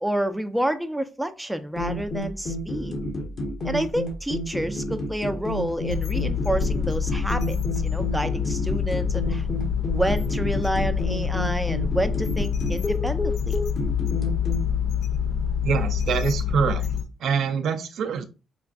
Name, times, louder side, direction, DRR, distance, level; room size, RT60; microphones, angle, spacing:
voice 1, 0.0-3.0 3.6-7.6 7.8-9.5 9.9-13.6, right 1 dB, 5° right, 9 dB, 0.5 m, -29 dB
sound 1, 1.8-14.6, left 1 dB, 50° left, 1.2 m, -31 dB
sound 2, 5.9-17.0, left 7 dB, 70° left, 0.5 m, -26 dB
voice 2, 15.6-16.9 17.2-18.2, right 6 dB, 70° right, 6 dB, 0.5 m, -25 dB
4.5 x 2.5 x 2.4 m, 0.30 s
cardioid pair, 90°, 0 cm